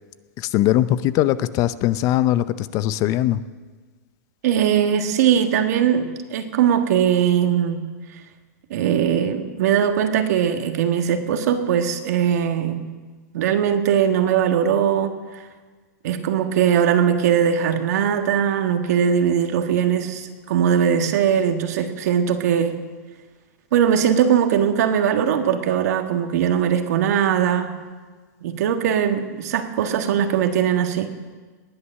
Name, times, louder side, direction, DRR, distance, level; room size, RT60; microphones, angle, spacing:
voice 1, 0.4-3.4, left 13 dB, 35° left, 15 dB, 0.6 m, -20 dB
voice 2, 4.4-7.9 8.7-12.9 13.3-15.4 16.0-22.8 23.7-27.8 28.4-31.1, right 8 dB, 65° right, 6 dB, 1.7 m, -20 dB
19.0 x 9.8 x 6.5 m, 1.4 s
hypercardioid pair, 130°, 9 cm